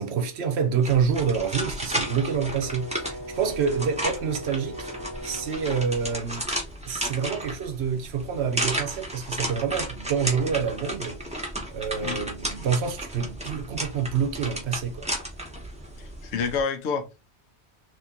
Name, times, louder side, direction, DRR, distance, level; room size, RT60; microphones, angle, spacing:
voice 1, 0.0-4.9 5.2-6.5 6.8-11.2 11.7-15.1, right 6 dB, 70° right, 0.9 m, -27 dB
sound 1, 0.8-16.6, right 1 dB, 5° right, 0.7 m, -33 dB
Brass instrument, 1.6-5.9, equal, 30° right, 0.4 m, -40 dB
voice 2, 16.0-17.3, left 5 dB, 75° left, 1.0 m, -29 dB
2.8 x 2.8 x 3.6 m
omnidirectional pair, 1.2 m